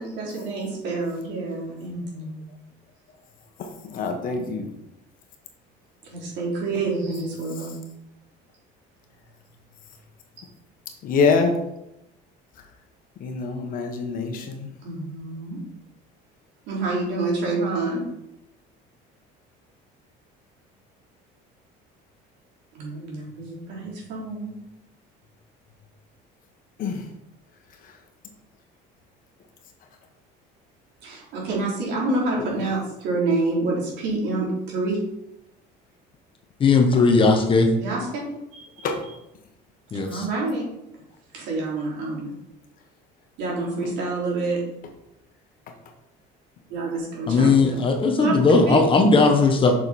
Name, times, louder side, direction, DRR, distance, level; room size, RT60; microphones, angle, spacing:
voice 1, 0.0-2.4 6.0-7.8 14.8-15.6 16.7-18.0 22.7-24.6 31.0-35.0 37.7-38.9 40.1-40.7 41.3-42.3 43.4-44.6 46.7-47.7 48.2-48.3 48.7-48.9, right 3 dB, 65° right, -3 dB, 3.5 m, -28 dB
voice 2, 3.6-4.7 11.0-11.6 13.2-14.7 26.8-27.0 38.8-39.0, left 4 dB, 45° left, 4 dB, 1.4 m, -25 dB
voice 3, 36.6-37.7 39.9-40.2 47.3-49.7, left 3 dB, 25° left, 4 dB, 1.0 m, -17 dB
7.8 x 6.3 x 4.3 m, 0.84 s
cardioid pair, 155°, 19 cm